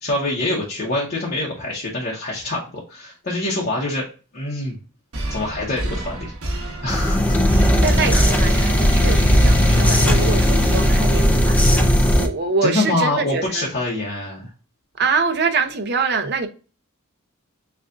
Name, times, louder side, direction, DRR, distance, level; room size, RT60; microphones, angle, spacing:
voice 1, 0.0-4.0 4.3-4.8 5.3-6.3 6.8-7.4 8.1-8.4 12.6-14.5, left 2 dB, 45° left, 0.9 m, -25 dB
sound 1, 5.1-11.5, right 1 dB, 75° right, 1.2 m, -27 dB
sound 2, 6.9-12.3, equal, 5° left, 0.5 m, -17 dB
voice 2, 7.6-11.9 12.1-13.6 15.0-16.5, right 4 dB, 50° right, 0.7 m, -24 dB
6.7 x 2.4 x 2.4 m
head